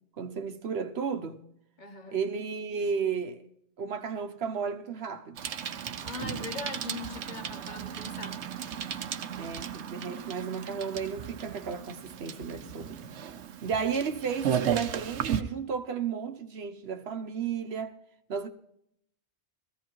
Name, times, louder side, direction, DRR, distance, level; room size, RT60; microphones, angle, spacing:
voice 1, 0.2-1.4 2.1-3.4 3.8-5.4 9.4-13.0 13.6-18.0 18.3-18.5, right 6 dB, 70° right, 1.0 m, -33 dB
voice 2, 1.8-2.2 6.0-8.4, left 3 dB, 45° left, 1.0 m, -41 dB
Bicycle, 5.4-15.4, right 8 dB, 85° right, 1.0 m, -35 dB
19.5 x 15.0 x 3.0 m
omnidirectional pair, 1.1 m